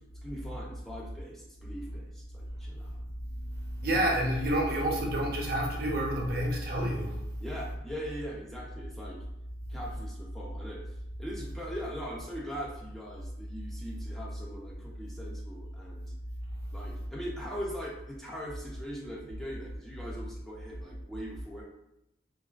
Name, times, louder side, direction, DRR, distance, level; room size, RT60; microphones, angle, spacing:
voice 1, 0.2-3.0 7.4-9.2 9.7-10.8 11.2-16.1 16.7-21.6, equal, ahead, -5 dB, 0.3 m, -41 dB
voice 2, 3.5-7.2, right 1 dB, 55° right, -1 dB, 0.5 m, -29 dB
2.4 x 2.2 x 2.3 m, 0.85 s
head